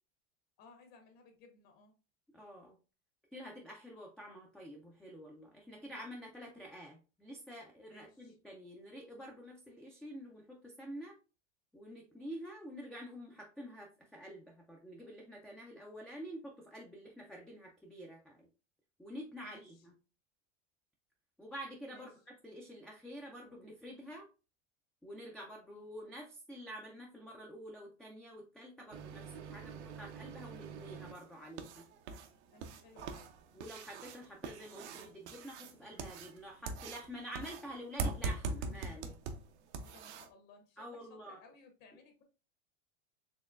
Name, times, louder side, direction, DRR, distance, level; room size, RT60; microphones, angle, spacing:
voice 1, 0.6-1.9 7.8-8.4 19.4-19.9 21.9-22.1 32.5-33.3 39.8-42.2, left 4 dB, 55° left, 4 dB, 1.2 m, -60 dB
voice 2, 2.3-2.8 3.3-11.2 11.7-18.4 19.0-19.9 21.4-22.1 22.4-24.3 25.0-31.8 33.5-39.1 40.8-41.4, equal, ahead, -1 dB, 0.3 m, -48 dB
sound 1, 28.9-40.3, right 4 dB, 75° right, 0.7 m, -43 dB
4.3 x 3.0 x 2.4 m, 0.33 s
supercardioid pair, 120°, 34 cm